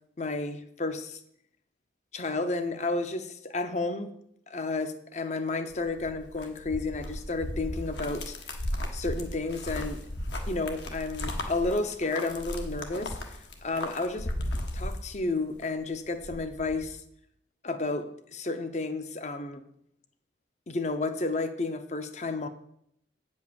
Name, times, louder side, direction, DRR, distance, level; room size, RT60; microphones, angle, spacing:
voice 1, 0.2-1.2 2.1-4.1 4.5-8.4 8.9-10.0 10.5-13.2 13.6-14.3 14.7-17.0 17.6-19.6 20.7-22.5, left 3 dB, 40° left, 9 dB, 0.7 m, -31 dB
sound 1, 5.7-15.6 15.9-16.9, left 1 dB, 75° left, 1.4 m, -36 dB
8.8 x 5.4 x 7.0 m, 0.72 s
head